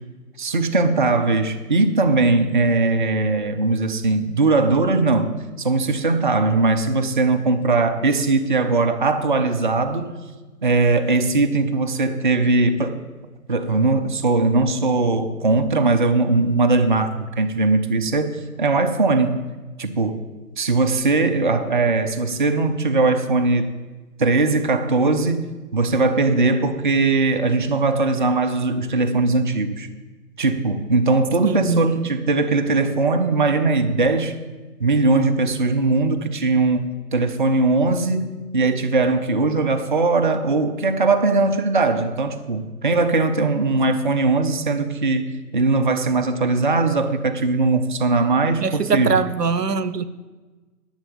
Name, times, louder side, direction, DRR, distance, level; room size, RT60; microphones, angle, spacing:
voice 1, 0.4-10.1 10.6-13.0 13.5-19.4 19.8-20.2 20.6-23.7 24.2-25.5 25.7-29.9 30.4-34.4 34.8-49.2, right 3 dB, 35° right, 0.5 m, -20 dB
voice 2, 31.4-32.1 48.6-50.0, right 5 dB, 85° right, 0.8 m, -22 dB
11.5 x 6.7 x 7.1 m
figure-of-eight pair, 145°, 47 cm